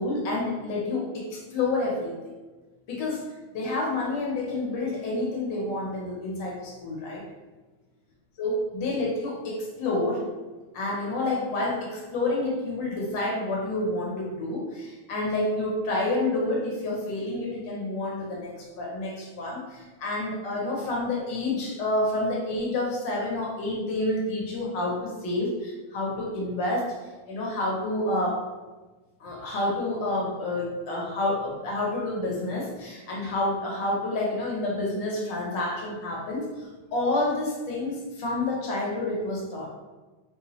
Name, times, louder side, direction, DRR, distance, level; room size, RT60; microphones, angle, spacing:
voice 1, 0.0-2.1 2.9-3.2 3.5-7.2 8.4-10.2 10.7-26.9 27.3-28.4 29.2-39.7, left 2 dB, 65° left, -2 dB, 1.4 m, -29 dB
4.7 x 2.2 x 2.9 m, 1.2 s
omnidirectional pair, 2.3 m